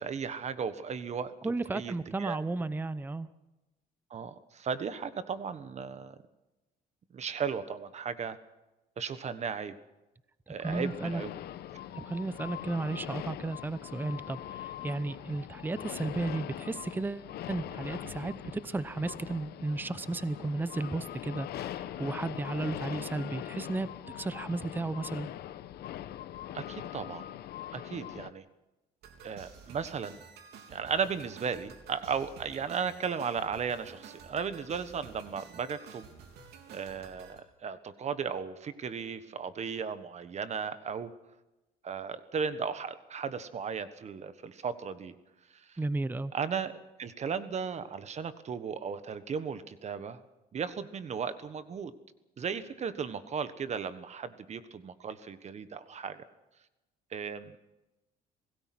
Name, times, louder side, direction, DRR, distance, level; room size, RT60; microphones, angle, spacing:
voice 1, 0.0-1.9 2.2-2.4 4.1-6.2 7.1-8.4 9.0-9.8 10.5-11.3 26.5-27.3 27.7-28.4 29.2-30.2 30.7-36.1 36.7-41.1 41.8-45.1 45.5-45.8 46.3-46.7 47.0-50.2 50.5-51.9 52.4-56.2 57.1-57.5, right 6 dB, 40° right, 12 dB, 1.4 m, -35 dB
voice 2, 1.4-3.3 10.6-11.2 11.9-23.9 24.1-25.3 45.8-46.3, right 2 dB, 10° right, 15 dB, 0.8 m, -34 dB
sound 1, 10.6-28.3, left 12 dB, 70° left, 1.1 m, -42 dB
sound 2, 29.0-37.4, right 6 dB, 75° right, 3.6 m, -51 dB
26.0 x 18.0 x 6.1 m, 1.0 s
cardioid pair, 110°, 17 cm